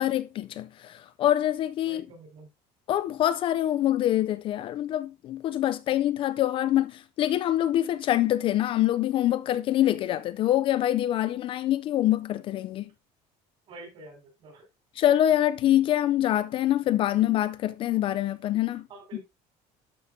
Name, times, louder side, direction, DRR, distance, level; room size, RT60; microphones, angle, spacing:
voice 1, 0.0-2.0 2.9-12.8 15.0-18.8 19.1-19.2, left 12 dB, 40° left, 0.4 m, -25 dB
voice 2, 1.8-2.5 13.7-14.6 18.9-19.2, right 2 dB, 40° right, 5.1 m, -46 dB
12.5 x 5.4 x 2.7 m
cardioid pair, 165°, 14 cm